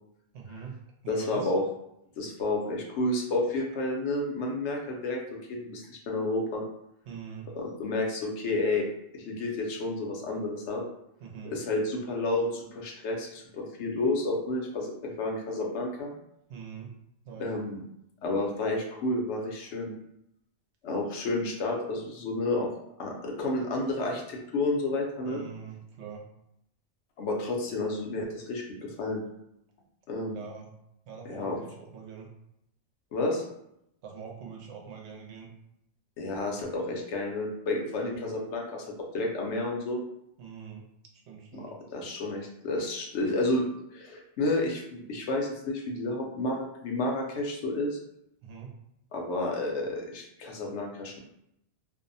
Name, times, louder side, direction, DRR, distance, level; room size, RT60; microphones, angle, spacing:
voice 1, 0.3-0.7 1.0-1.5 7.1-7.5 11.2-11.5 16.5-16.9 17.2-17.5 25.3-26.2 30.3-30.7 31.1-32.3 34.0-35.5 38.0-38.3 40.4-40.8 41.3-41.7 48.4-48.7, right 6 dB, 75° right, 1 dB, 0.8 m, -43 dB
voice 2, 1.1-1.6 2.2-6.6 7.5-8.9 9.1-10.8 11.4-16.1 17.4-17.8 18.2-19.9 20.8-22.7 23.0-25.4 27.2-29.2 30.1-30.4 31.3-31.6 33.1-33.4 36.2-40.0 41.5-48.0 49.1-51.2, left 2 dB, 75° left, 1 dB, 0.9 m, -31 dB
2.6 x 2.0 x 2.6 m, 0.78 s
omnidirectional pair, 1.2 m